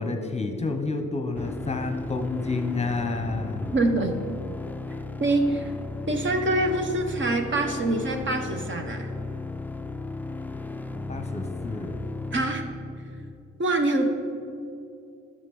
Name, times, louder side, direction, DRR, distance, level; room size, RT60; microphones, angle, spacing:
voice 1, 0.0-3.8 11.1-12.0, left 3 dB, 20° left, 5 dB, 1.0 m, -29 dB
sound 1, 1.4-13.3, left 3 dB, 5° left, 0.4 m, -35 dB
voice 2, 3.7-4.2 5.2-5.7 6.1-9.1 12.3-12.6 13.6-14.1, right 2 dB, 40° right, 5 dB, 1.1 m, -25 dB
11.0 x 6.7 x 5.4 m, 2.6 s
cardioid pair, 90°, 30 cm